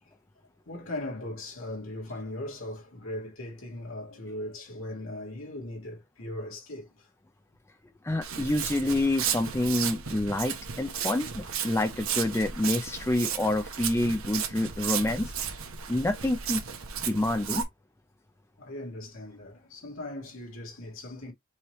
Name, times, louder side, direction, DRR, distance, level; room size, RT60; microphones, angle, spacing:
voice 1, 0.7-7.1 11.6-11.8 18.6-21.3, left 1 dB, 70° left, 2.1 m, -39 dB
voice 2, 8.0-15.3 15.9-16.6 17.1-17.6, left 1 dB, 15° left, 0.4 m, -27 dB
Walk footsteps, 8.2-17.6, right 8 dB, 80° right, 1.1 m, -34 dB
5.5 x 3.2 x 3.0 m
head